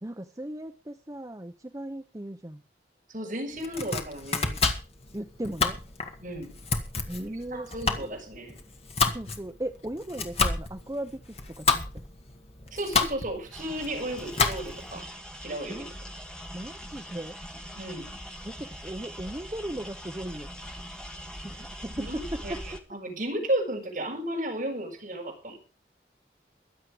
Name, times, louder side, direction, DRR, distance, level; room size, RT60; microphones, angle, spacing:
voice 1, 0.0-2.6 5.1-5.8 7.1-7.7 9.1-11.8 15.7-15.9 16.5-17.3 18.4-20.5 21.4-22.1 22.5-22.6, right 1 dB, 20° right, 7 dB, 0.7 m, -37 dB
voice 2, 3.1-4.6 6.2-6.5 7.3-8.6 12.7-15.0 15.4-15.9 17.8-18.1 21.9-25.6, right 1 dB, 45° right, 0 dB, 6.6 m, -34 dB
Domestic sounds home sounds, 3.6-14.9, left 4 dB, 35° left, 1.8 m, -30 dB
sound 1, 13.5-22.8, equal, 5° left, 1.8 m, -42 dB
22.5 x 7.6 x 5.0 m, 0.36 s
head